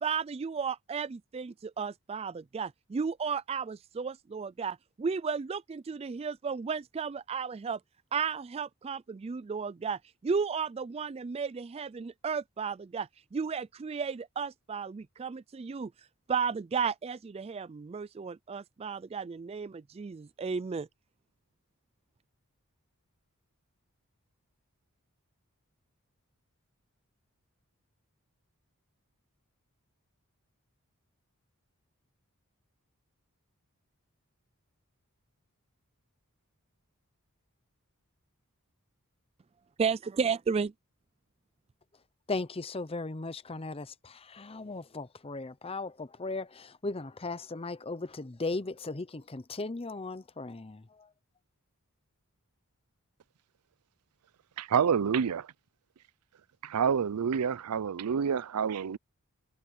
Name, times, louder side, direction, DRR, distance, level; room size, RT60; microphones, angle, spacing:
voice 1, 0.0-7.8 8.1-15.9 16.3-20.9 39.8-40.7, right 5 dB, 25° right, 0.3 m, -34 dB
voice 2, 42.3-50.8, left 3 dB, 25° left, 0.7 m, -37 dB
voice 3, 54.6-55.5 56.6-59.0, right 7 dB, 90° right, 0.5 m, -28 dB
head